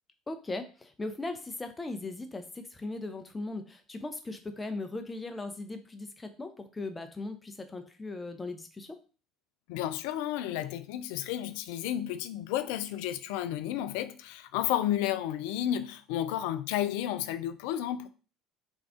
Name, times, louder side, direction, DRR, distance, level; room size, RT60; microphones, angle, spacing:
voice 1, 0.3-9.0, left 2 dB, 20° left, 0.7 m, -38 dB
voice 2, 9.7-18.1, left 12 dB, 70° left, 0.3 m, -32 dB
3.5 x 2.4 x 3.6 m
hypercardioid pair, 65°, 0 cm